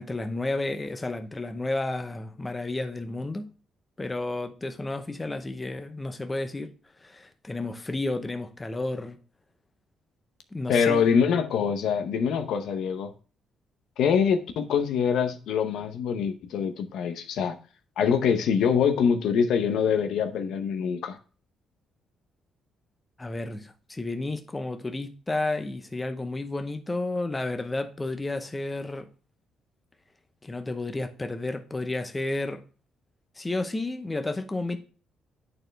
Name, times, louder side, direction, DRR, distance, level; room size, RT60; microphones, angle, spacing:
voice 1, 0.0-3.5 4.0-6.7 7.0-9.2 10.5-11.1 23.2-29.1 30.4-32.6 33.4-34.8, left 2 dB, 20° left, 0.8 m, -31 dB
voice 2, 10.7-13.1 14.0-17.6 18.0-21.2, left 7 dB, 80° left, 0.7 m, -24 dB
8.8 x 4.3 x 3.3 m
cardioid pair, 90°, 0 cm